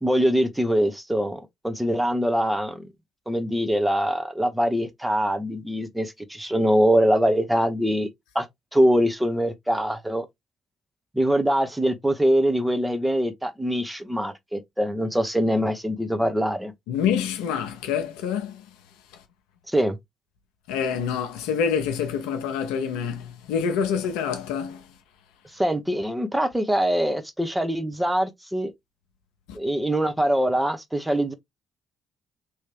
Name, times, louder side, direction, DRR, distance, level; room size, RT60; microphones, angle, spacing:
voice 1, 0.0-2.8 3.3-8.1 8.3-8.5 8.7-10.2 11.1-16.7 19.7-20.0 25.5-28.7 29.5-31.3, equal, 10° right, 0.9 m, -23 dB
voice 2, 16.9-18.6 20.7-24.8 29.5-29.6, left 7 dB, 80° left, 0.7 m, -26 dB
3.1 x 2.8 x 3.3 m
hypercardioid pair, 50°, 0 cm